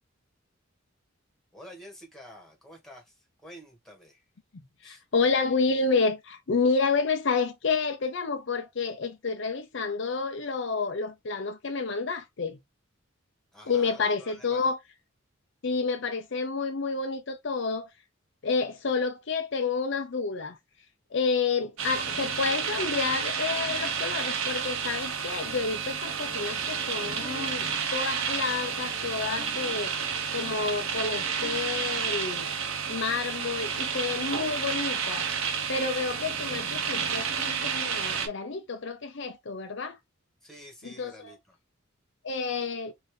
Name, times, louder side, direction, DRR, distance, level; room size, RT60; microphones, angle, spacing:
voice 1, 1.5-4.2 4.8-5.0 13.5-14.7 40.4-41.6, equal, ahead, 1.5 m, -49 dB
voice 2, 4.8-12.6 13.7-14.8 15.6-17.9 18.4-20.6 21.1-29.9 30.3-32.5 32.9-35.3 35.7-40.0 40.8-41.3 42.2-42.9, left 4 dB, 60° left, 0.6 m, -29 dB
sound 1, 21.8-38.3, right 6 dB, 80° right, 0.9 m, -31 dB
sound 2, 25.4-32.6, right 1 dB, 15° left, 1.1 m, -53 dB
4.2 x 2.8 x 3.1 m
head